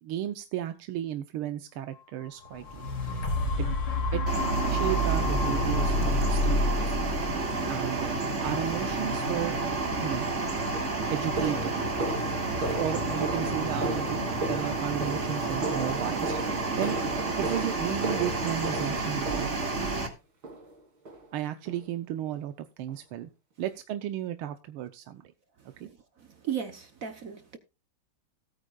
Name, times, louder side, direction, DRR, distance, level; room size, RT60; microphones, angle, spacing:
voice 1, 0.0-2.8 3.6-3.8 4.1-4.2 4.6-7.0 7.7-9.6 10.0-10.3 11.1-11.8 12.6-14.2 14.5-16.4 16.8-17.0 17.4-20.0 21.3-23.3 23.6-25.3 25.8-25.9, right 11 dB, 90° right, 1.7 m, -34 dB
sound 1, 2.4-10.5 11.0-11.1, left 1 dB, 80° left, 3.8 m, -29 dB
sound 2, 4.3-20.1, right 3 dB, 35° right, 2.3 m, -30 dB
sound 3, 10.0-10.2 10.7-20.0 20.4-20.8 21.0-21.3 21.7-21.8 22.3-22.4 22.9-23.0, right 2 dB, 70° right, 3.8 m, -36 dB
voice 2, 26.4-27.6, right 9 dB, 55° right, 1.1 m, -35 dB
18.0 x 9.2 x 2.4 m
omnidirectional pair, 2.3 m